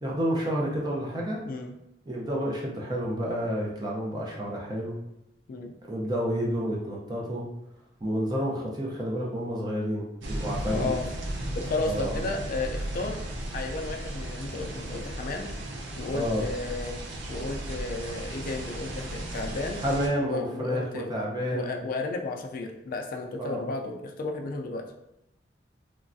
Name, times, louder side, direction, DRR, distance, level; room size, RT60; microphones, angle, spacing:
voice 1, 0.0-1.4 2.1-5.0 5.9-7.4 8.0-10.9 11.9-12.2 16.1-16.5 19.8-21.7 23.4-23.6, equal, 25° right, -3 dB, 0.6 m, -30 dB
voice 2, 1.4-1.7 5.5-5.7 10.7-11.1 11.5-15.5 16.0-17.0 17.3-19.8 20.2-21.1 21.5-24.8, left 3 dB, 50° left, 3 dB, 0.3 m, -33 dB
sound 1, 10.2-20.1, right 1 dB, 90° right, 0.5 m, -35 dB
3.1 x 2.3 x 2.5 m, 0.84 s
head